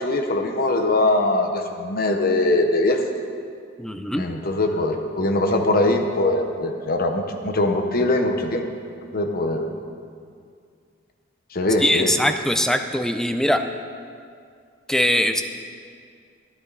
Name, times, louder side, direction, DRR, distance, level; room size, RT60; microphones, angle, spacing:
voice 1, 0.0-3.3 4.1-8.6 9.1-9.8 11.5-12.1, left 2 dB, 50° left, 4 dB, 0.9 m, -22 dB
voice 2, 3.8-4.2 11.8-13.6 14.9-15.4, left 1 dB, 5° left, 7 dB, 0.4 m, -21 dB
12.5 x 9.9 x 4.0 m, 2.2 s
head